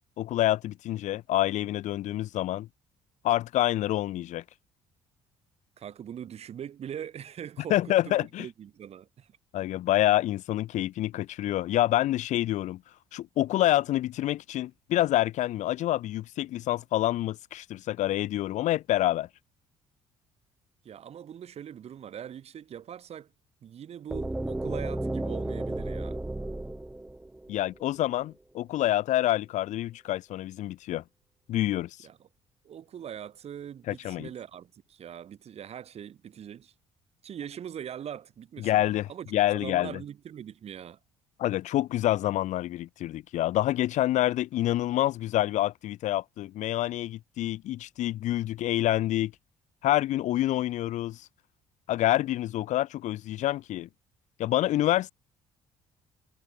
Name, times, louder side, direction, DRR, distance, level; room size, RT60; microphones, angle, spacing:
voice 1, 0.2-2.7 3.2-4.4 7.7-8.5 9.5-12.8 13.1-19.3 27.5-31.0 31.5-32.0 33.9-34.3 38.6-40.0 41.4-49.3 49.8-51.3 51.9-53.9 54.4-55.1, left 14 dB, 70° left, 1.1 m, -27 dB
voice 2, 5.8-9.3 20.8-23.3 23.6-26.2 32.0-32.3 32.6-36.7 37.2-41.0, right 9 dB, 55° right, 3.8 m, -42 dB
sound 1, 24.1-28.0, right 2 dB, 10° right, 0.6 m, -33 dB
cardioid pair, 90°, 13 cm